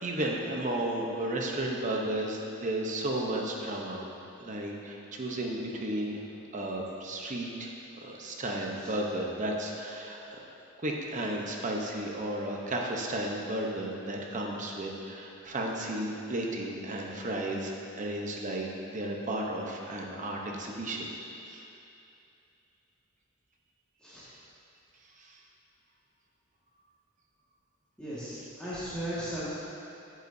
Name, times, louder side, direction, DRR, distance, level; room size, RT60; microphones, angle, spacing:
voice 1, 0.0-4.1 4.4-6.2 6.5-7.7 8.0-10.4 10.8-21.1 21.4-21.6 25.2-25.3, right 1 dB, 40° right, 0 dB, 0.8 m, -33 dB
voice 2, 28.0-29.5, equal, 5° left, -13 dB, 1.7 m, -36 dB
8.9 x 8.1 x 2.7 m, 2.7 s
head